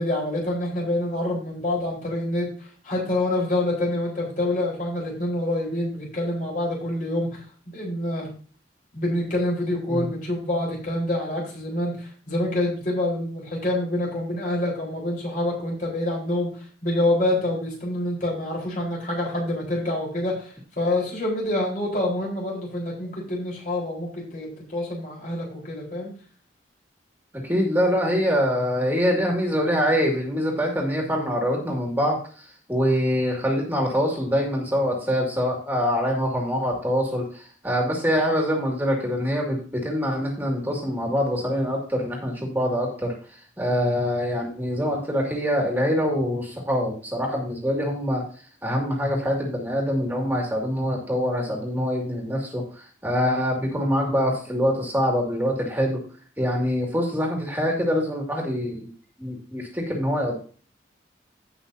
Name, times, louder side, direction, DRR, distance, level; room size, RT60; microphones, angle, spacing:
voice 1, 0.0-2.5 2.8-7.4 7.7-8.3 8.9-16.5 16.8-26.1, left 1 dB, 45° left, -2 dB, 4.3 m, -26 dB
voice 2, 27.3-48.2 48.6-56.0 56.4-58.9 59.2-60.4, equal, 10° right, -1 dB, 2.3 m, -24 dB
16.5 x 5.7 x 2.8 m, 0.42 s
head